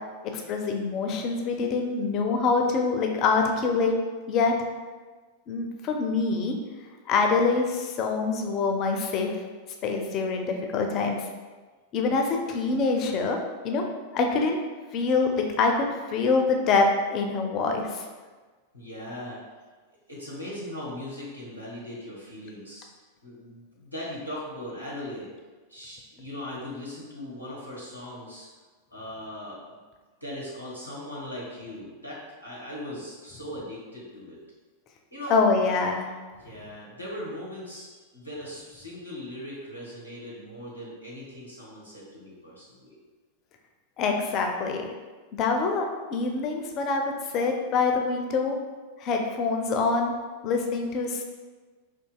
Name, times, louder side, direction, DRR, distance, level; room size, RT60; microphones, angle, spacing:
voice 1, 0.3-4.0 4.3-4.5 5.5-6.6 7.1-9.3 9.8-11.3 11.9-13.4 13.6-13.8 14.1-14.6 14.9-18.0 35.3-36.1 44.0-44.9 45.4-48.6 49.0-50.1 50.4-51.2, left 4 dB, 35° left, 2 dB, 0.4 m, -25 dB
voice 2, 18.7-19.4 19.9-22.9 23.2-25.3 25.7-28.5 28.9-29.8 30.2-34.4 35.1-35.4 36.4-43.0, left 1 dB, 90° right, -7 dB, 1.0 m, -39 dB
4.4 x 2.6 x 2.3 m, 1.4 s
figure-of-eight pair, 90°, 0 cm